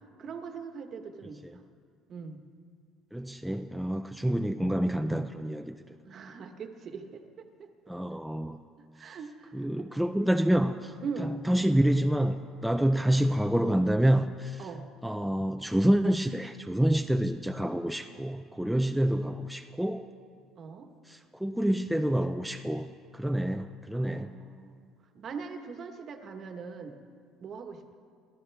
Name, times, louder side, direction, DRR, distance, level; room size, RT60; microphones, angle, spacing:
voice 1, 0.2-1.6 2.1-2.4 6.1-7.7 8.9-9.9 11.0-11.4 14.6-14.9 20.6-20.9 23.9-24.9 25.1-27.0 27.4-27.9, right 5 dB, 40° right, 6 dB, 1.3 m, -41 dB
voice 2, 3.1-5.8 7.9-8.6 9.5-10.9 11.5-14.7 15.0-20.0 21.1-22.9 23.1-24.3, right 1 dB, ahead, 5 dB, 0.4 m, -27 dB
28.5 x 13.0 x 3.5 m, 2.1 s
cardioid pair, 145°, 0 cm